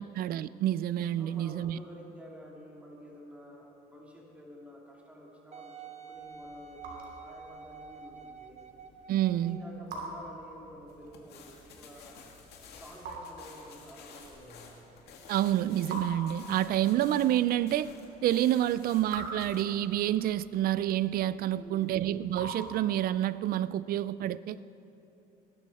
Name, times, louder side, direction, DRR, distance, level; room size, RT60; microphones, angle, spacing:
voice 1, 0.0-1.8 9.1-9.6 15.3-17.9 18.2-24.6, right 12 dB, 60° right, 0.4 m, -28 dB
voice 2, 1.2-8.6 9.3-12.2 12.6-14.8 21.5-22.1, equal, 10° right, 2.7 m, -50 dB
Wind instrument woodwind instrument, 5.5-9.8 10.5-10.6, right 5 dB, 40° right, 0.9 m, -48 dB
Raindrop / Drip, 6.1-23.3, right 2 dB, 80° right, 3.1 m, -47 dB
sound 1, 10.9-19.6, left 5 dB, 75° left, 2.1 m, -52 dB
20.0 x 11.5 x 4.2 m
cardioid pair, 110°, 17 cm